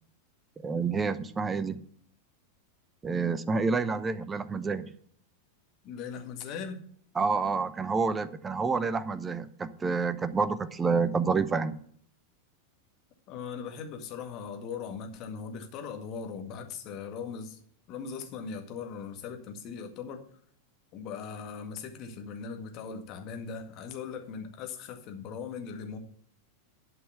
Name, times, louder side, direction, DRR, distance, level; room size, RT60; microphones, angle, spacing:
voice 1, 0.6-1.8 3.0-4.9 7.1-11.8, right 4 dB, 15° right, 15 dB, 0.7 m, -28 dB
voice 2, 5.8-6.8 13.3-17.6 17.9-20.3 20.9-26.0, left 6 dB, 40° left, 4 dB, 1.8 m, -39 dB
11.5 x 5.5 x 6.7 m, 0.62 s
figure-of-eight pair, 90°, 0 cm